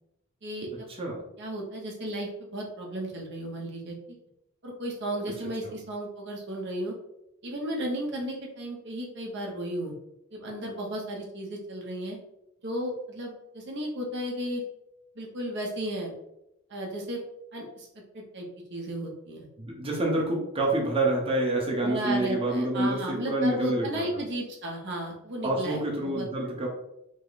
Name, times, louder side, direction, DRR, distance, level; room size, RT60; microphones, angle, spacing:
voice 1, 0.4-0.9 1.4-4.0 4.6-6.9 7.4-9.9 10.3-12.2 12.6-14.6 15.2-16.2 16.7-17.2 17.5-17.9 18.1-19.5 21.8-26.3, right 1 dB, 55° right, -1 dB, 0.9 m, -34 dB
voice 2, 19.6-24.2 25.4-26.7, right 2 dB, 25° right, -2 dB, 0.9 m, -27 dB
5.1 x 2.1 x 3.9 m, 0.84 s
head